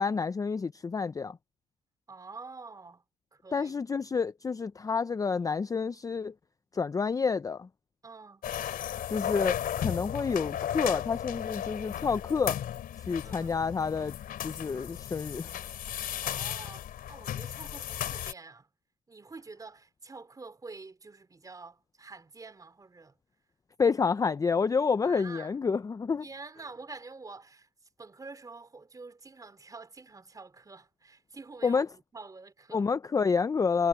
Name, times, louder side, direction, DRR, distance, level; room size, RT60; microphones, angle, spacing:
voice 1, 0.0-1.4 3.5-6.3 6.7-7.7 9.1-12.6 13.1-14.2 14.4-15.5 23.8-26.2 31.6-31.9 32.7-33.9, left 5 dB, 20° left, 0.5 m, -29 dB
voice 2, 2.1-3.0 3.3-3.8 8.0-8.5 13.2-13.6 16.2-18.7 19.1-23.2 24.9-25.6 26.2-27.7 28.0-32.9, right 3 dB, 20° right, 4.2 m, -47 dB
sound 1, 8.4-18.3, left 10 dB, 60° left, 3.2 m, -35 dB
cardioid pair, 110°, 17 cm